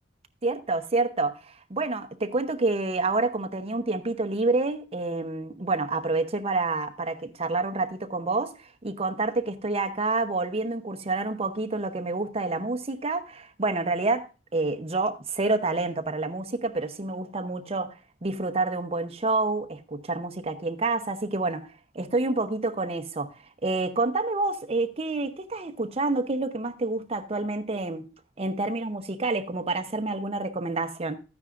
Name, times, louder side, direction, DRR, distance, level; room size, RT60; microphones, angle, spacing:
voice 1, 0.4-14.3 14.5-21.7 21.9-23.3 23.6-28.1 28.4-31.2, right 3 dB, 35° right, 0.8 m, -28 dB
13.5 x 9.6 x 2.5 m
head